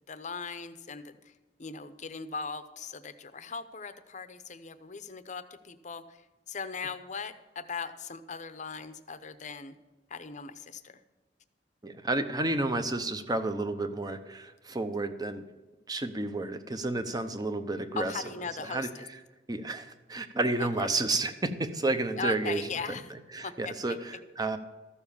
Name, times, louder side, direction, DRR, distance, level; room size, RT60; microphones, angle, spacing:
voice 1, 0.1-1.3 1.6-6.2 6.5-9.7 10.1-11.0 18.0-18.9 20.6-20.7 22.2-23.1 23.4-24.0, left 5 dB, 40° left, 11 dB, 0.7 m, -39 dB
voice 2, 11.8-15.5 15.9-18.2 18.6-18.9 19.5-22.7 23.1-24.6, right 2 dB, 20° right, 9 dB, 0.8 m, -31 dB
14.0 x 7.1 x 7.1 m, 1.2 s
head